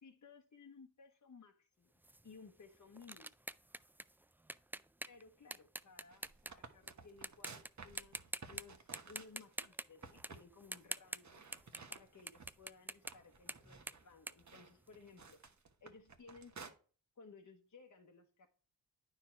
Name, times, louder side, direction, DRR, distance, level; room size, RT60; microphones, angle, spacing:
voice 1, 0.0-1.9 2.2-3.3 5.1-11.4 11.9-15.4 15.8-16.8 17.2-18.5, left 4 dB, 45° left, 1.2 m, -59 dB
sound 1, 2.0-6.9 7.2-7.7 8.0-8.6 8.9-12.0 12.3-15.3, right 1 dB, 5° right, 0.3 m, -47 dB
sound 2, 5.9-9.7 10.0-10.5 10.7-10.9 11.2-12.7 13.0-16.7, right 5 dB, 45° right, 1.3 m, -55 dB
9.6 x 4.7 x 4.4 m
supercardioid pair, 50°, 40 cm